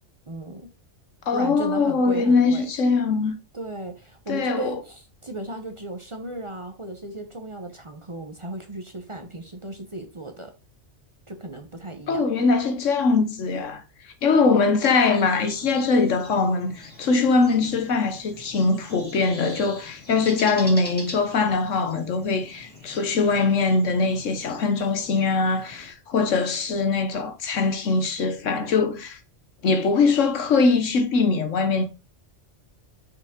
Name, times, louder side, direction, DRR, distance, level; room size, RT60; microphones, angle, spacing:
voice 1, 0.3-0.7 1.3-2.6 3.5-10.5 11.3-12.3, right 2 dB, 30° right, 0.8 m, -36 dB
voice 2, 1.3-3.4 4.3-4.8 12.1-13.8 14.2-29.2 29.6-31.8, left 4 dB, 85° left, 1.4 m, -22 dB
sound 1, 15.1-25.9, left 1 dB, 5° left, 2.7 m, -43 dB
6.1 x 5.1 x 3.6 m
omnidirectional pair, 1.3 m